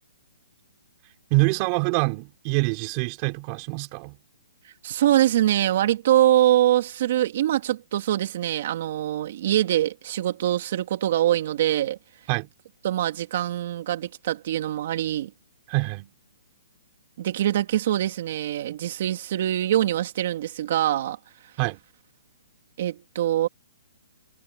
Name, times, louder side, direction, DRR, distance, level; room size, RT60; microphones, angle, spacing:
voice 1, 1.3-4.2 12.3-12.5 15.7-16.1 21.6-21.8, right 26 dB, 25° right, 5.2 m, -25 dB
voice 2, 4.8-12.0 12.8-15.3 17.2-21.2 22.8-23.5, right 12 dB, 40° right, 3.0 m, -23 dB
hypercardioid pair, 170°, 0 cm